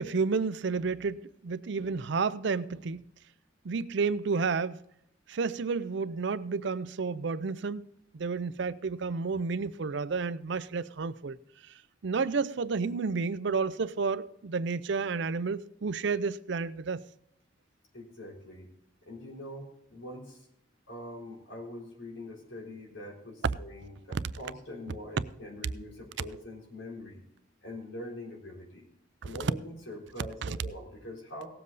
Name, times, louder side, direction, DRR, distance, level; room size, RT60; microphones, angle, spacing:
voice 1, 0.0-3.0 3.6-4.8 5.3-7.8 8.1-11.4 12.0-17.0 30.4-30.5, right 4 dB, 65° right, 0.5 m, -31 dB
voice 2, 17.9-18.7 19.0-20.5 20.9-27.2 27.6-28.9 29.2-31.5, left 1 dB, 80° left, 3.8 m, -43 dB
18.0 x 7.5 x 4.1 m
head